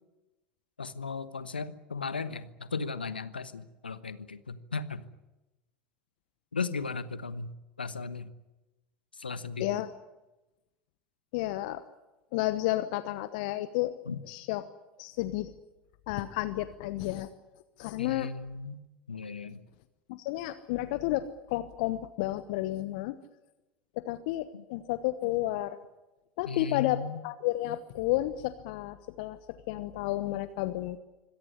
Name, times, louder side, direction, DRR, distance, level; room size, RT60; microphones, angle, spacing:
voice 1, 0.8-5.1 6.5-7.5 7.8-8.3 9.2-9.9 14.1-14.2 18.0-18.8 19.1-19.6 24.5-24.6 26.4-27.2, left 4 dB, 85° left, 14 dB, 1.2 m, -36 dB
voice 2, 11.3-11.8 12.3-13.9 14.2-14.6 15.0-15.5 16.1-17.3 17.8-18.3 20.1-23.2 24.0-25.8 26.4-29.4 29.7-31.0, left 16 dB, 60° left, 13 dB, 1.0 m, -31 dB
25.0 x 18.0 x 9.9 m, 1.0 s
figure-of-eight pair, 75°, 5 cm